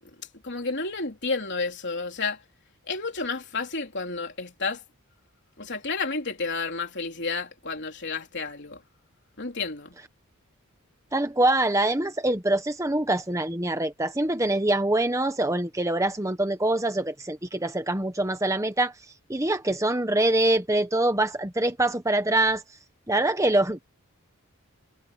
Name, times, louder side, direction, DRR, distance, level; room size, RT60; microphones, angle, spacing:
voice 1, 0.4-2.4 2.9-4.8 5.6-8.8 9.4-9.9, left 4 dB, 50° left, 3.8 m, -31 dB
voice 2, 11.1-18.9 19.3-22.6 23.1-23.8, right 1 dB, 15° right, 1.3 m, -24 dB
head